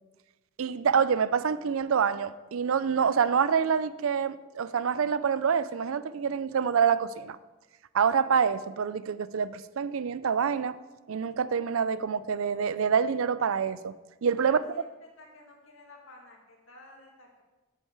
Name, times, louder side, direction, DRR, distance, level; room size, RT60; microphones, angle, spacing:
voice 1, 0.6-7.4 7.9-10.8 11.1-13.9 14.2-14.6, right 6 dB, 80° right, 0.4 m, -26 dB
voice 2, 14.4-17.4, left 2 dB, 75° left, 2.1 m, -52 dB
9.1 x 8.8 x 4.7 m
head